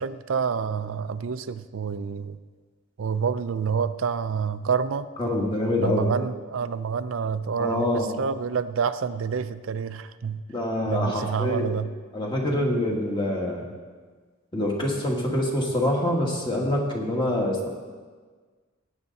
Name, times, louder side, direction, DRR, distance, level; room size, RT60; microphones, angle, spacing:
voice 1, 0.0-2.4 3.0-5.1 5.8-7.9 8.2-10.4 10.9-11.9, right 6 dB, 75° right, 12 dB, 0.5 m, -28 dB
voice 2, 5.2-6.1 7.6-8.2 10.5-11.8 12.1-13.7 14.5-17.7, left 1 dB, 25° left, -1 dB, 1.9 m, -25 dB
17.0 x 9.0 x 4.1 m, 1.5 s
head